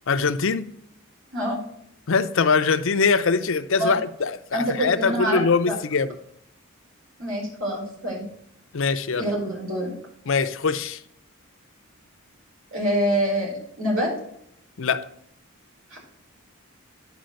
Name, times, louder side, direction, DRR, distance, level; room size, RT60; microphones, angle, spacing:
voice 1, 0.1-0.7 2.1-6.1 8.7-9.3 10.3-11.0 14.8-15.1, left 5 dB, 65° left, 0.6 m, -22 dB
voice 2, 4.5-5.4 5.6-5.7 7.2-8.2 9.2-9.9 12.7-14.1 15.9-16.0, right 1 dB, 70° right, 4.7 m, -25 dB
10.5 x 5.0 x 6.3 m
head